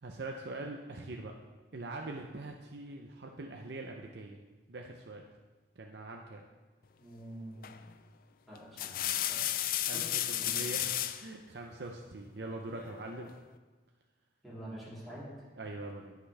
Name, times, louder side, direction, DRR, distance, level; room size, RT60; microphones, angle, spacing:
voice 1, 0.0-1.3 1.7-4.4 4.7-5.2 5.8-6.4 9.9-10.0 10.3-13.3 15.6-16.2, right 2 dB, 70° right, 2 dB, 0.7 m, -43 dB
voice 2, 7.0-7.7 8.5-9.4 9.9-10.1 10.4-10.6 14.4-15.5, right 1 dB, ahead, -10 dB, 3.5 m, -46 dB
sound 1, 7.6-7.9 8.5-11.3 12.7-13.4, left 12 dB, 55° left, 0.4 m, -34 dB
17.5 x 5.9 x 3.4 m, 1.3 s
head